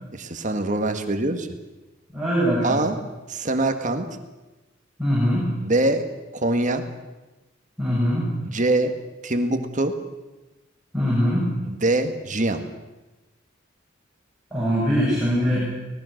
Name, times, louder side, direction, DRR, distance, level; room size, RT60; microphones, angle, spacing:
voice 1, 0.1-1.5 2.6-3.0 3.3-4.1 5.6-6.0 6.3-6.8 8.4-8.9 9.2-9.9 11.6-12.6, right 2 dB, 40° right, 7 dB, 1.7 m, -23 dB
voice 2, 2.1-2.8 5.0-5.4 7.8-8.3 10.9-11.4 14.5-15.8, equal, 5° right, -8 dB, 7.9 m, -22 dB
25.5 x 19.0 x 6.6 m, 1.1 s
head